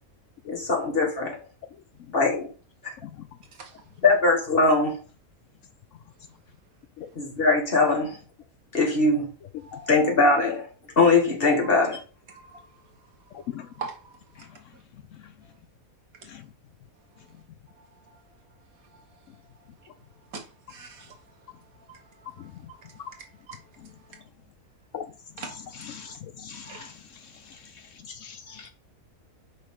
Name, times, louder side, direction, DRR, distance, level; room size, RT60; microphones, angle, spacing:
voice 1, 0.5-1.4 2.1-2.5 4.0-5.0 7.1-8.2 8.7-9.3 9.9-10.7 11.0-12.0, left 3 dB, 40° left, 1.8 m, -21 dB
voice 2, 12.3-12.6 13.8-14.2 15.4-15.5 20.3-21.2 21.9-23.6 24.1-24.2 25.4-26.1 26.6-26.9, right 5 dB, 75° right, 1.7 m, -43 dB
voice 3, 25.9-26.9 28.1-28.7, left 8 dB, 70° left, 0.8 m, -39 dB
6.3 x 5.3 x 3.6 m
omnidirectional pair, 1.5 m